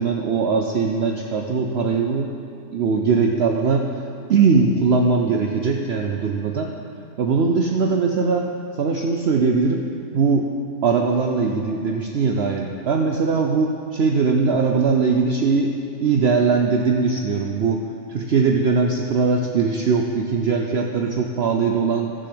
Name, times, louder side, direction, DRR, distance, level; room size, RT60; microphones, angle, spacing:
voice 1, 0.0-2.3 2.7-3.9 4.3-6.7 7.2-8.5 8.8-9.9 10.1-10.5 10.8-22.1, right 4 dB, 55° right, 3 dB, 0.8 m, -20 dB
13.5 x 6.8 x 7.8 m, 2.7 s
omnidirectional pair, 1.5 m